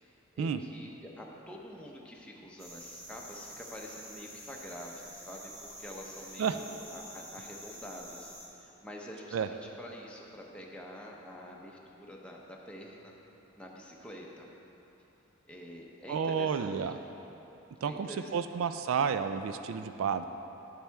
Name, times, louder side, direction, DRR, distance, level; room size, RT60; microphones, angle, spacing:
voice 1, 0.0-13.2 13.5-14.5 15.5-16.9 17.8-18.6, equal, 5° left, -2 dB, 0.7 m, -47 dB
sound 1, 2.6-8.5, equal, 25° right, 1.9 m, -48 dB
voice 2, 16.1-17.0 17.8-20.3, right 6 dB, 70° right, 9 dB, 0.3 m, -31 dB
10.0 x 7.4 x 3.5 m, 2.9 s
head